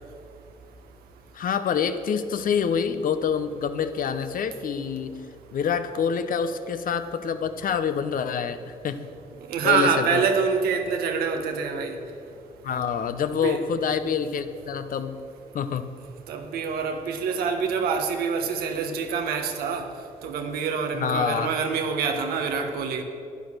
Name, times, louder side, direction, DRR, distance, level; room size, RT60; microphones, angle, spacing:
voice 1, 1.3-5.2 5.5-9.0 9.6-10.2 12.6-15.2 15.5-15.9 20.9-21.6, left 7 dB, 65° left, 10 dB, 0.8 m, -26 dB
voice 2, 9.5-12.0 13.4-13.6 16.3-19.9 20.2-23.0, right 5 dB, 90° right, 5 dB, 1.1 m, -26 dB
10.0 x 9.7 x 6.7 m, 2.5 s
supercardioid pair, 55°, 15 cm